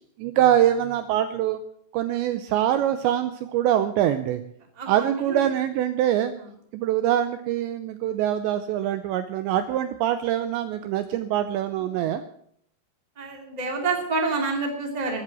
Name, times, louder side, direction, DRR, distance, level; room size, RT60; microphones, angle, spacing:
voice 1, 0.2-1.6 1.9-4.4 4.9-6.3 6.7-12.2, right 11 dB, 85° right, 10 dB, 2.6 m, -24 dB
voice 2, 4.8-5.4 13.1-15.2, right 3 dB, 15° right, 2 dB, 1.5 m, -28 dB
15.5 x 11.0 x 6.1 m, 0.68 s
omnidirectional pair, 5.8 m